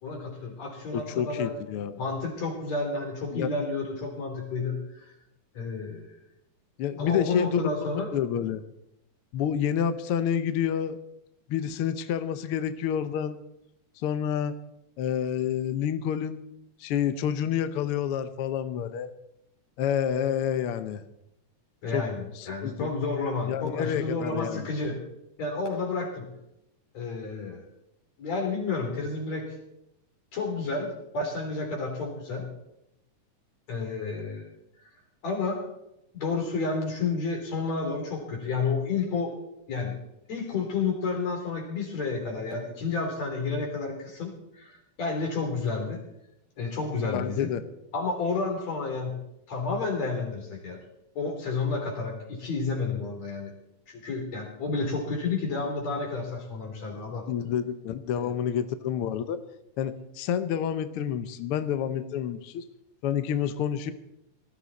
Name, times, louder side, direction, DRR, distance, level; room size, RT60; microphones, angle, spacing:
voice 1, 0.0-1.5 2.0-5.1 5.5-6.1 7.0-8.1 21.8-25.0 25.4-26.3 26.9-27.6 28.2-29.5 30.3-32.5 33.7-34.5 35.2-35.7 36.1-39.3 39.7-40.0 40.3-46.0 46.6-47.5 47.9-49.2 49.5-50.8 51.2-53.5 53.9-57.2 58.2-58.3, left 4 dB, 60° left, 1 dB, 4.6 m, -30 dB
voice 2, 0.9-2.0 3.3-3.5 6.8-7.7 8.1-8.6 9.3-11.0 11.5-13.4 14.0-14.6 15.0-16.4 16.8-19.1 19.8-21.0 21.9-22.0 22.4-22.9 23.5-24.6 47.1-47.6 57.3-59.4 59.8-62.7 63.0-63.9, left 9 dB, 75° left, 10 dB, 1.3 m, -28 dB
19.5 x 14.0 x 4.1 m, 0.83 s
omnidirectional pair, 3.6 m